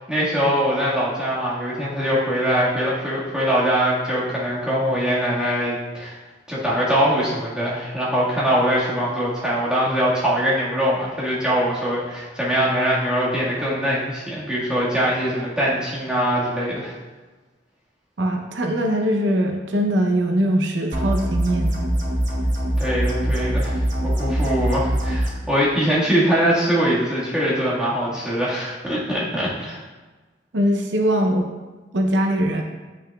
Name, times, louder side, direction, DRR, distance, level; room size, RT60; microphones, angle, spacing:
voice 1, 0.1-6.1 6.5-16.9 22.8-23.8 24.0-29.8, equal, 5° right, -9 dB, 1.7 m, -22 dB
voice 2, 18.2-21.8 30.5-31.5 31.9-32.6, equal, 90° right, 3 dB, 0.7 m, -21 dB
sound 1, 20.9-25.3, equal, 45° right, 1.0 m, -23 dB
8.8 x 5.9 x 2.3 m, 1.3 s
head